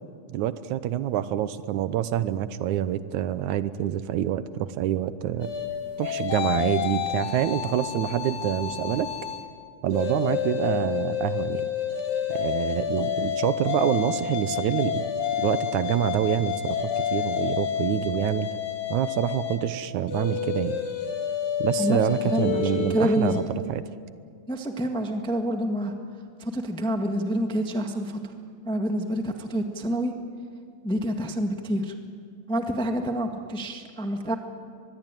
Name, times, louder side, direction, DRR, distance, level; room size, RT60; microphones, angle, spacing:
voice 1, 0.3-5.5 6.0-9.1 9.8-11.6 12.3-15.0 15.4-18.5 18.9-20.8 21.6-23.4 23.7-23.8, right 11 dB, 85° right, 13 dB, 2.3 m, -26 dB
sound 1, 5.4-9.5 9.9-23.4, left 9 dB, 75° left, 3.2 m, -29 dB
voice 2, 21.8-23.4 24.5-25.9 26.4-28.2 28.6-30.1 30.8-31.9 32.5-34.3, equal, 5° left, 4 dB, 0.7 m, -27 dB
24.5 x 21.5 x 9.1 m, 2.2 s
omnidirectional pair, 3.4 m